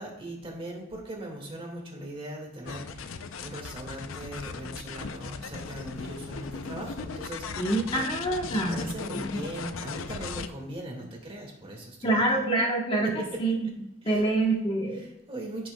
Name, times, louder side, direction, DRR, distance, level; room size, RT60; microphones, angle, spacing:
voice 1, 0.0-8.1 8.5-12.4 14.0-14.3 14.9-15.7, right 1 dB, 30° right, 0 dB, 1.9 m, -40 dB
sound 1, 2.7-10.5, left 5 dB, 90° left, 0.5 m, -38 dB
voice 2, 7.6-8.9 12.0-13.1 13.4-13.7 14.0-15.0, right 2 dB, 25° left, 0 dB, 1.2 m, -26 dB
15.5 x 6.0 x 2.3 m, 0.90 s
head